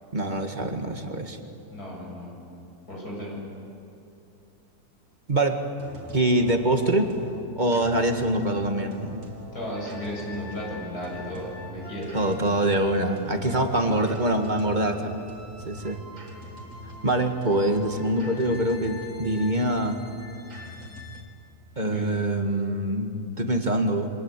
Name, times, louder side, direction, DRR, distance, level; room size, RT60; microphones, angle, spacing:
voice 1, 0.1-1.4 5.3-5.6 6.1-7.1 7.6-9.2 12.1-15.2 15.7-16.0 17.0-20.0 21.8-24.1, right 1 dB, 30° right, 4 dB, 1.9 m, -24 dB
voice 2, 1.7-2.4 2.9-3.4 9.5-12.1 13.6-13.9 21.8-22.1, equal, 80° left, -3 dB, 8.7 m, -35 dB
sound 1, 5.8-21.2, right 1 dB, 55° right, 3.0 m, -42 dB
28.0 x 25.0 x 8.4 m, 2.6 s
omnidirectional pair, 1.6 m